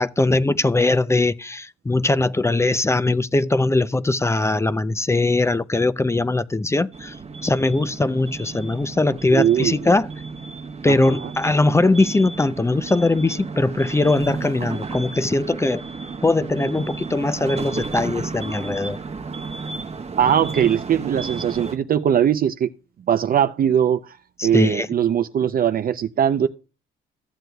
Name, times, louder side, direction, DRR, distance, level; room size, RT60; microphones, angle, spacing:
voice 1, 0.0-7.2 7.4-10.1 10.8-15.8 16.2-19.0 24.4-24.9, left 2 dB, 15° left, 0.4 m, -20 dB
sound 1, 6.9-21.8, right 4 dB, 30° right, 1.1 m, -33 dB
voice 2, 9.3-9.8 10.9-11.3 20.2-22.7 23.1-24.2 24.4-26.5, right 9 dB, 45° right, 0.5 m, -20 dB
15.0 x 7.6 x 2.3 m
cardioid pair, 90°, 20 cm